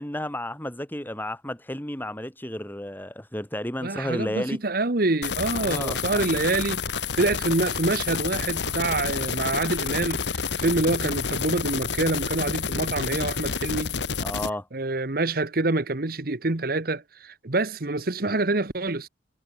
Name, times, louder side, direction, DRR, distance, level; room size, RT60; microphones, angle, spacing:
voice 1, 0.0-4.6 5.6-6.3 14.2-14.7, left 1 dB, 10° left, 3.3 m, -32 dB
voice 2, 3.8-13.9 14.7-19.1, right 2 dB, 55° right, 1.3 m, -26 dB
sound 1, 5.2-14.5, left 6 dB, 85° left, 1.4 m, -29 dB
head